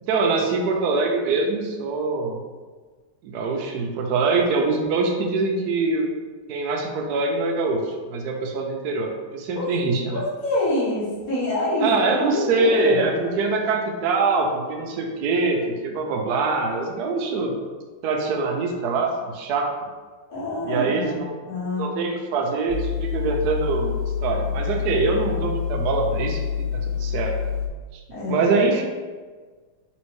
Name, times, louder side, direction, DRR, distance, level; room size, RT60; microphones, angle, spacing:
voice 1, 0.1-2.4 3.2-6.1 6.5-10.2 11.8-17.5 18.0-19.7 20.6-21.3 21.8-24.0 24.2-26.4 26.7-27.3 27.9-28.0 28.3-28.8, right 3 dB, 90° right, 2 dB, 0.8 m, -24 dB
voice 2, 10.1-13.4 20.3-21.2 21.5-21.9 28.1-28.5, left 1 dB, 45° left, -9 dB, 1.8 m, -26 dB
sound 1, 22.7-27.7, left 7 dB, 90° left, 1.5 m, -27 dB
4.1 x 3.5 x 3.1 m, 1.4 s
omnidirectional pair, 2.3 m